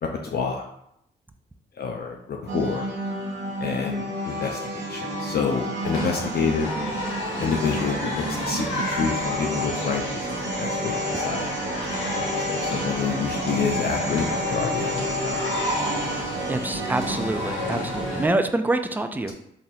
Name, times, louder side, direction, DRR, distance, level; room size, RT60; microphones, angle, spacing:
voice 1, 0.0-0.6 1.7-2.9 3.6-6.7 7.4-11.9 12.2-15.4, left 6 dB, 55° left, 1 dB, 0.5 m, -28 dB
sound 1, 2.5-18.3, right 1 dB, 70° right, 0.8 m, -30 dB
sound 2, 5.8-18.3, left 1 dB, 80° left, 1.0 m, -32 dB
voice 2, 16.5-19.3, right 2 dB, 10° right, 7 dB, 0.3 m, -26 dB
3.9 x 2.5 x 2.6 m, 0.76 s
supercardioid pair, 55°, 20 cm